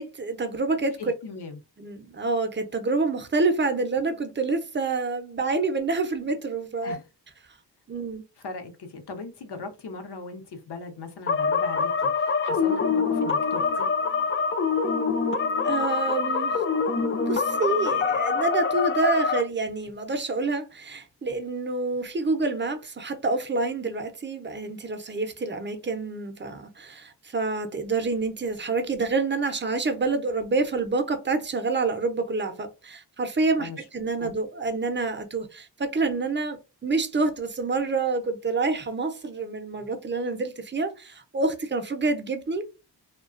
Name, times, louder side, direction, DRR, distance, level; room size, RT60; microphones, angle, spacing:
voice 1, 0.0-1.0 1.8-7.0 7.9-8.2 15.6-16.6 16.9-42.6, right 3 dB, 25° right, 0.6 m, -27 dB
voice 2, 1.0-1.6 6.8-7.0 8.4-13.9 33.6-33.8 34.2-34.3, left 4 dB, 65° left, 0.7 m, -39 dB
sound 1, 11.3-19.4, left 5 dB, 30° left, 0.4 m, -25 dB
2.3 x 2.2 x 2.4 m
cardioid pair, 50°, 42 cm